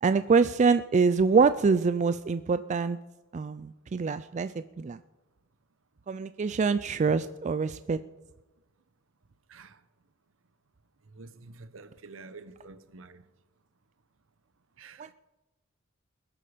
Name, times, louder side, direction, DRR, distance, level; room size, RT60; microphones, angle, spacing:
voice 1, 0.0-3.0 3.3-5.0 6.1-8.0 15.0-15.1, right 5 dB, 35° right, 0.3 m, -25 dB
voice 2, 9.5-9.8 11.0-13.3 14.8-15.1, right 3 dB, 70° right, 0.9 m, -48 dB
21.0 x 8.6 x 5.0 m
head